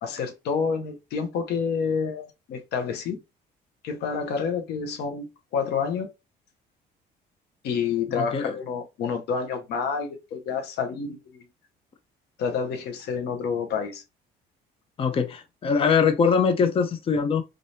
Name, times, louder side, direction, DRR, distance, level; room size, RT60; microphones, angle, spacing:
voice 1, 0.0-3.2 3.8-5.3 5.5-6.1 7.6-11.5 12.4-14.0, left 6 dB, 75° left, 0.9 m, -28 dB
voice 2, 8.2-8.6 15.0-17.4, left 6 dB, 35° left, 0.6 m, -22 dB
3.8 x 3.3 x 2.8 m
cardioid pair, 110°, 17 cm